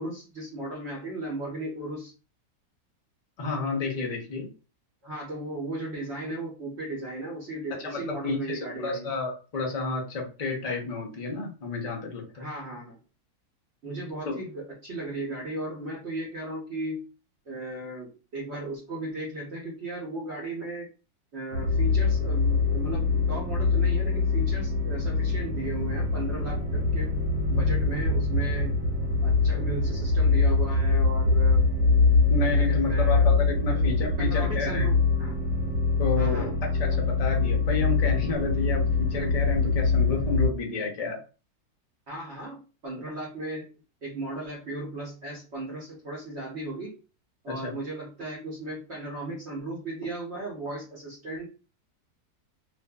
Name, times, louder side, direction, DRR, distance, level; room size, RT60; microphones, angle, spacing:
voice 1, 0.0-2.1 5.0-9.1 12.3-13.0 13.8-17.1 17.5-20.9 21.3-27.1 27.5-28.8 29.2-31.7 32.3-33.4 33.7-33.9 34.2-35.4 36.2-36.5 42.1-43.7 44.0-47.0 47.4-51.4, right 2 dB, 55° right, -4 dB, 0.9 m, -36 dB
voice 2, 3.4-4.5 7.8-12.5 14.3-14.4 32.3-34.9 36.0-41.2 47.5-47.7, left 3 dB, 50° left, -1 dB, 0.4 m, -31 dB
sound 1, 21.5-40.5, left 4 dB, 90° right, 1.2 m, -24 dB
2.5 x 2.5 x 2.2 m, 0.34 s
omnidirectional pair, 1.7 m